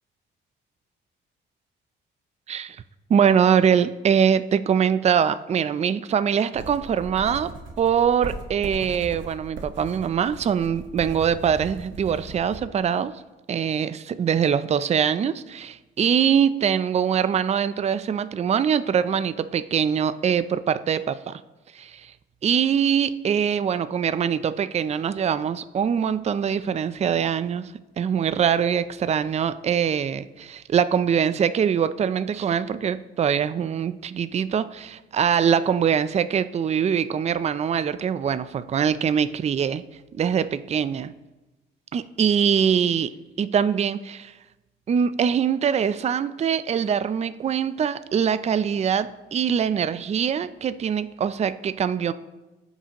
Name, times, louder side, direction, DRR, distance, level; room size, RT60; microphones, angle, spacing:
voice 1, 3.1-7.5 7.8-13.2 13.5-21.4 21.7-22.1 22.4-27.7 28.0-39.8 40.1-41.1 41.9-43.1 43.4-44.3 44.9-52.1, right 8 dB, 35° right, 14 dB, 0.4 m, -23 dB
sound 1, 6.5-12.6, right 3 dB, 75° right, 1.1 m, -38 dB
15.0 x 5.4 x 2.9 m, 1.1 s
cardioid pair, 90°, 20 cm